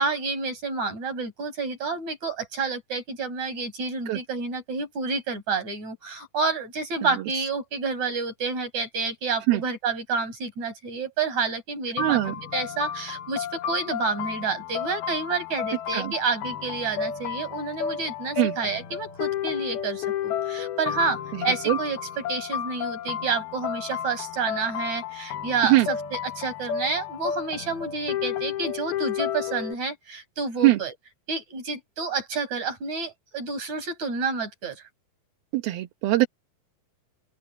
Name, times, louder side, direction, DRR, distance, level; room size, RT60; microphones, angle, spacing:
voice 1, 0.0-12.2 12.5-30.9 31.3-34.8, right 4 dB, 50° right, 8.4 m, -29 dB
sound 1, 12.0-29.7, left 9 dB, 85° left, 3.5 m, -32 dB
voice 2, 12.0-12.3 15.9-16.1 18.4-18.5 21.7-21.8 25.6-25.9 30.6-30.8 35.5-36.3, right 17 dB, 85° right, 3.2 m, -21 dB
open air
omnidirectional pair, 4.2 m